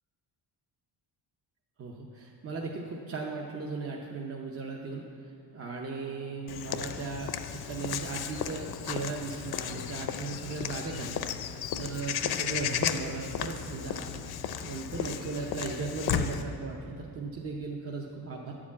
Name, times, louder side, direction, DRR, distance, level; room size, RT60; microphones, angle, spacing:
voice 1, 1.8-18.5, right 4 dB, 35° right, 0 dB, 0.7 m, -37 dB
Walk footsteps / Bird vocalization bird call bird song, 6.5-16.4, left 9 dB, 65° left, 0.6 m, -34 dB
11.0 x 4.9 x 8.3 m, 2.7 s
cardioid pair, 145°, 41 cm